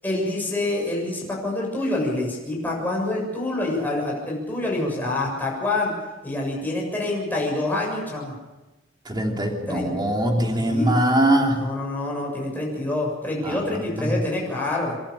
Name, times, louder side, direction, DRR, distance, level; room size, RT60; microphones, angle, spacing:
voice 1, 0.0-5.9 6.2-8.3 9.7-9.9 10.6-10.9 11.5-14.9, left 2 dB, 10° left, -2 dB, 7.0 m, -26 dB
voice 2, 9.0-11.6 13.4-13.6 14.0-14.1, right 1 dB, 20° right, 1 dB, 3.2 m, -22 dB
27.5 x 11.5 x 8.7 m, 1.1 s
head